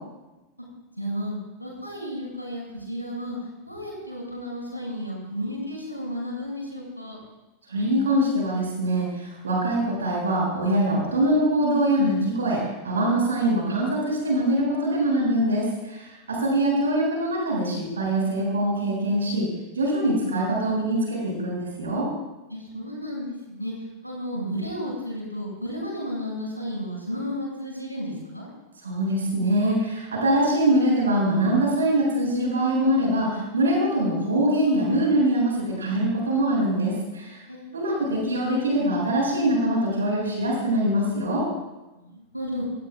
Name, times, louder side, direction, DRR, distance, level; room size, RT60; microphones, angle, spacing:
voice 1, 1.0-1.3 1.6-3.4 3.7-7.2 22.5-23.7 24.0-28.5 37.2-37.8 42.0-42.6, equal, 90° right, -3 dB, 7.1 m, -33 dB
voice 2, 7.7-19.5 19.7-22.1 28.8-37.4 37.7-41.5, right 1 dB, 70° right, -3 dB, 7.7 m, -23 dB
27.5 x 19.0 x 2.6 m, 1.0 s
figure-of-eight pair, 90°, 0 cm